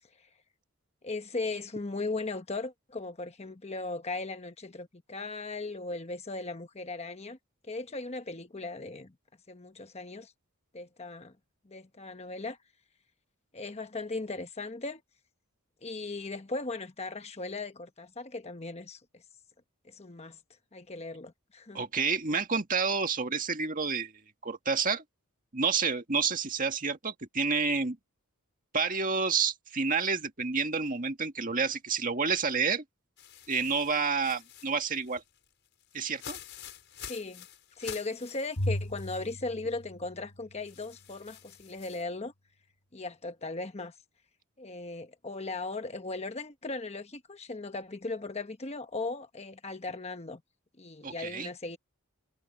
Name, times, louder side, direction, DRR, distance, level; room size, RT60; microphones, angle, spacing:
voice 1, 1.0-7.4 7.7-9.1 9.5-10.3 10.7-11.3 11.7-12.6 13.5-15.0 15.8-19.2 19.8-20.4 20.7-21.8 37.1-37.5 37.8-42.3 42.9-43.9 44.6-50.4 50.8-51.8, left 3 dB, 30° left, 1.1 m, -37 dB
voice 2, 21.7-24.1 24.4-25.0 25.5-28.0 28.7-32.8 33.5-35.2 35.9-36.4 51.0-51.5, right 5 dB, 40° right, 1.9 m, -29 dB
sound 1, 33.2-39.4 39.8-39.9 40.6-42.0, left 9 dB, 55° left, 7.0 m, -48 dB
Bowed string instrument, 38.6-41.0, left 1 dB, 80° left, 3.8 m, -36 dB
head